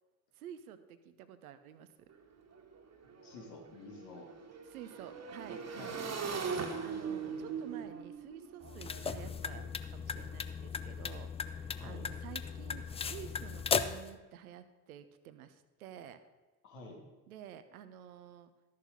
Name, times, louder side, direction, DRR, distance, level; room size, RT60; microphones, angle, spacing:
voice 1, 0.3-2.1 4.7-6.0 6.8-16.2 17.3-18.5, right 10 dB, 75° right, 12 dB, 0.8 m, -51 dB
Motorcycle / Engine, 2.1-2.2 2.5-9.6, right 5 dB, 35° right, 1.6 m, -41 dB
voice 2, 3.2-4.3 5.7-6.0 11.7-12.1 16.6-17.0, left 3 dB, 65° left, -1 dB, 2.5 m, -49 dB
sound 1, 8.6-14.1, left 6 dB, 15° left, 0.4 m, -37 dB
13.0 x 6.6 x 5.2 m, 1.2 s
figure-of-eight pair, 55°, 44 cm